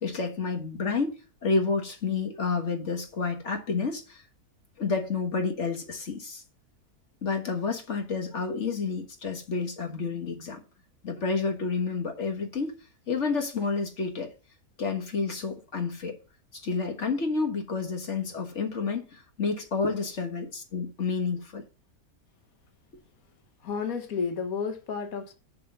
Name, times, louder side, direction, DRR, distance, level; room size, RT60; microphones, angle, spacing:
voice 1, 0.0-4.2 4.8-6.4 7.2-10.6 11.0-12.8 13.1-14.3 14.8-16.2 16.5-21.6, left 4 dB, 50° left, 1.7 m, -30 dB
voice 2, 23.6-25.3, left 5 dB, 65° left, 1.7 m, -31 dB
6.7 x 6.4 x 5.3 m
omnidirectional pair, 1.6 m